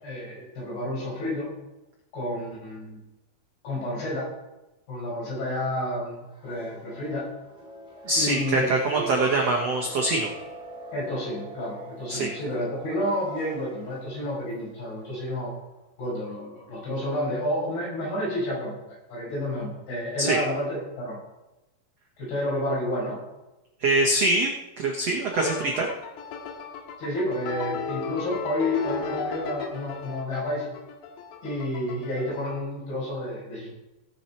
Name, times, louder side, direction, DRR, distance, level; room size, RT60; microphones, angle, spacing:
voice 1, 0.0-1.5 2.1-3.0 3.6-4.2 4.9-7.3 8.2-9.1 10.9-15.5 16.0-21.2 22.2-23.2 27.0-30.7 31.4-33.7, left 1 dB, 65° left, -5 dB, 7.6 m, -30 dB
sound 1, 6.2-15.7, equal, ahead, 1.9 m, -43 dB
voice 2, 8.0-10.3 12.1-12.3 20.2-20.4 23.8-24.5 24.8-25.9, right 2 dB, 85° right, -1 dB, 1.4 m, -24 dB
sound 2, 25.3-32.6, left 5 dB, 80° left, 3.8 m, -35 dB
19.0 x 7.2 x 4.5 m, 1.0 s
omnidirectional pair, 5.0 m